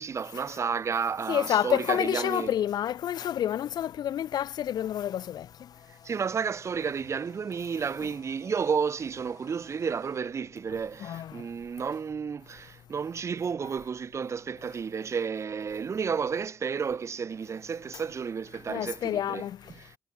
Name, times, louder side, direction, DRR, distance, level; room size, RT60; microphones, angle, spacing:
voice 1, 0.0-2.5 6.0-19.4 19.7-20.0, right 6 dB, 45° right, 0.4 m, -32 dB
voice 2, 1.3-5.7 11.0-11.5 18.7-19.7, left 10 dB, 80° left, 0.6 m, -29 dB
sound 1, 4.7-10.2, left 7 dB, 65° left, 4.3 m, -57 dB
cardioid pair, 85°, 7 cm